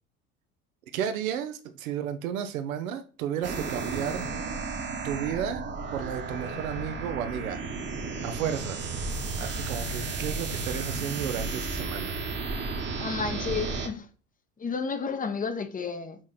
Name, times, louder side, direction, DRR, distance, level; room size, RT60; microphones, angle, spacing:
voice 1, 0.9-4.2 5.0-5.6 5.9-7.6 8.2-8.9 9.4-12.2, right 9 dB, 70° right, 0.8 m, -33 dB
sound 1, 3.4-13.9, right 3 dB, 25° right, 1.2 m, -33 dB
voice 2, 13.0-14.1 14.6-16.2, left 5 dB, 20° left, 0.9 m, -31 dB
6.2 x 4.8 x 4.2 m
figure-of-eight pair, 70°, 43 cm